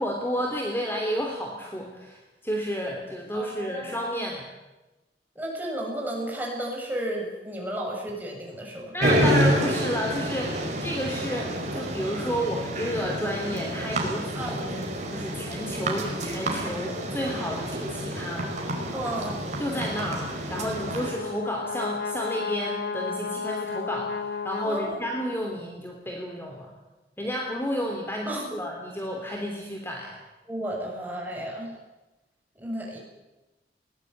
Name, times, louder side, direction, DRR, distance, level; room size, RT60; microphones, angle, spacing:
voice 1, 0.0-4.5 8.9-14.8 15.1-18.5 18.7-19.3 19.6-26.7 27.2-30.2, equal, 15° left, 1 dB, 3.2 m, -31 dB
voice 2, 3.3-4.3 5.4-8.9 14.3-14.6 18.9-19.4 24.6-25.2 28.3-28.4 30.5-31.7 32.6-33.0, right 1 dB, 10° right, -1 dB, 7.1 m, -33 dB
sound 1, 9.0-21.1, right 1 dB, 40° right, 5.0 m, -29 dB
Brass instrument, 20.4-25.5, left 5 dB, 70° left, 1.7 m, -33 dB
21.0 x 19.5 x 9.4 m, 1.1 s
head